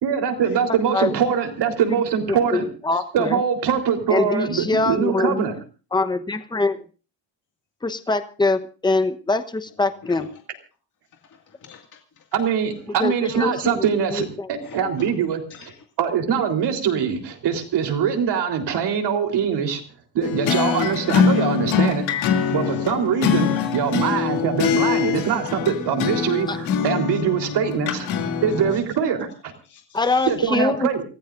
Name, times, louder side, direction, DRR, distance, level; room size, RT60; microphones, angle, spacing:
voice 1, 0.0-2.6 3.1-5.5 12.3-15.7 16.0-19.8 20.1-22.2 22.5-28.1 28.4-29.5 30.3-31.0, right 7 dB, 60° right, 4 dB, 3.8 m, -23 dB
voice 2, 2.5-3.4 4.1-5.4 5.9-6.8 7.8-10.3 13.0-13.7 14.1-14.5 26.5-26.6 29.9-30.9, left 3 dB, 10° left, 9 dB, 1.0 m, -23 dB
voice 3, 11.3-12.2 14.6-15.1 15.5-15.8 22.4-22.9 24.0-24.1 29.6-30.3, left 6 dB, 40° left, 2 dB, 2.2 m, -44 dB
sound 1, 20.2-28.8, left 7 dB, 90° left, 2.9 m, -23 dB
29.0 x 15.5 x 2.6 m, 0.36 s
cardioid pair, 125°, 46 cm